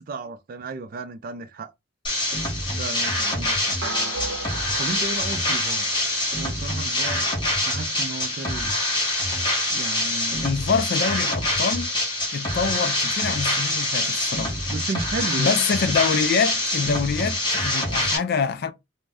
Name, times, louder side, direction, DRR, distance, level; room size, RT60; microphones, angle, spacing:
voice 1, 0.0-1.7 2.8-4.1 4.8-5.9 6.4-7.3 7.6-8.7 9.7-10.5 13.0-13.4 14.7-15.6, right 3 dB, 45° right, 0.4 m, -34 dB
sound 1, 2.0-18.2, left 1 dB, 25° left, 1.0 m, -25 dB
sound 2, 3.8-6.3, right 3 dB, 85° right, 0.6 m, -35 dB
voice 2, 10.4-11.9 12.3-14.6 15.4-18.7, left 5 dB, 55° left, 0.3 m, -25 dB
2.5 x 2.1 x 3.3 m
head